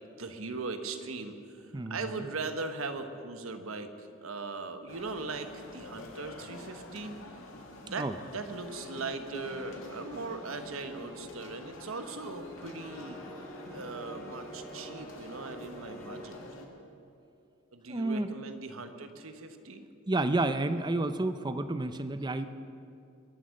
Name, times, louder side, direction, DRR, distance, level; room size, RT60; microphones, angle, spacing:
voice 1, 0.2-1.6 1.9-7.1 7.8-8.1 8.3-13.2 13.7-16.4 17.7-19.9, right 3 dB, 90° right, 8 dB, 1.1 m, -39 dB
voice 2, 1.7-2.3 7.9-8.2 17.9-18.3 20.1-22.5, right 2 dB, 20° right, 11 dB, 0.6 m, -30 dB
sound 1, 4.9-16.7, left 2 dB, 75° left, 1.9 m, -48 dB
sound 2, 8.6-16.3, left 1 dB, 15° left, 3.6 m, -48 dB
22.5 x 8.3 x 6.5 m, 2.6 s
head